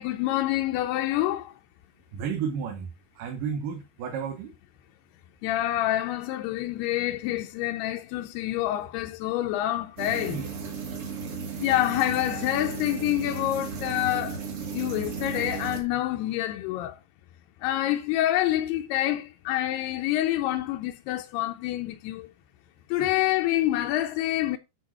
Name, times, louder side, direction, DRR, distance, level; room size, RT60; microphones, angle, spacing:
voice 1, 0.0-1.5 5.4-10.4 11.6-14.4 14.7-17.0 17.6-22.3 22.9-24.6, left 14 dB, 85° left, 2.6 m, -27 dB
voice 2, 2.1-2.9 3.2-4.5 10.3-10.5 23.0-23.1, right 7 dB, 70° right, 2.4 m, -32 dB
sound 1, 10.0-15.8, right 5 dB, 40° right, 2.6 m, -35 dB
10.5 x 4.6 x 4.3 m
omnidirectional pair, 4.6 m